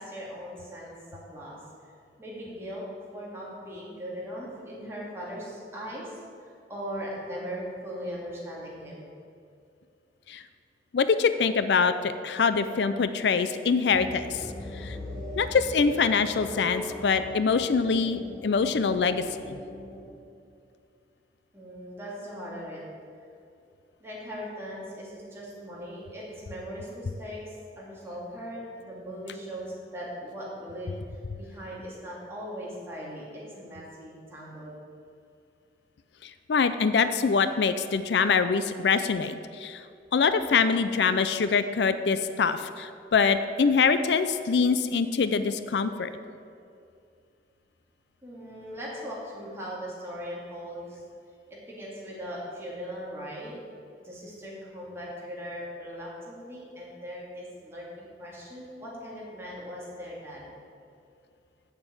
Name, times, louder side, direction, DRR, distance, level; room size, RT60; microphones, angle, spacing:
voice 1, 0.0-1.6 2.2-2.8 3.1-9.0 21.5-22.8 24.0-31.0 31.3-34.7 48.2-51.0 51.7-53.6 54.0-60.5, equal, 15° right, -6 dB, 2.5 m, -39 dB
voice 2, 10.9-14.4 14.8-15.0 15.4-19.6 36.5-39.3 39.6-39.8 40.1-46.1, left 5 dB, 75° left, 11 dB, 0.4 m, -24 dB
sound 1, 13.9-20.2, left 1 dB, 5° left, 1.2 m, -40 dB
7.7 x 7.1 x 7.8 m, 2.5 s
head